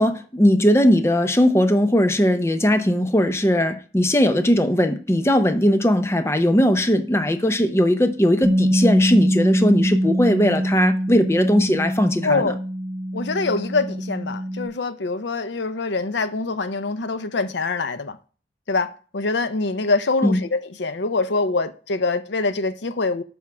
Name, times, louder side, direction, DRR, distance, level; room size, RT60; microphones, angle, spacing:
voice 1, 0.0-12.5 20.2-20.4, equal, 15° left, 0.6 m, -19 dB
Bass guitar, 8.4-14.7, equal, 10° right, 1.5 m, -23 dB
voice 2, 12.2-12.6 13.1-18.2 18.7-23.2, left 3 dB, 75° left, 0.6 m, -24 dB
8.8 x 3.6 x 6.0 m
head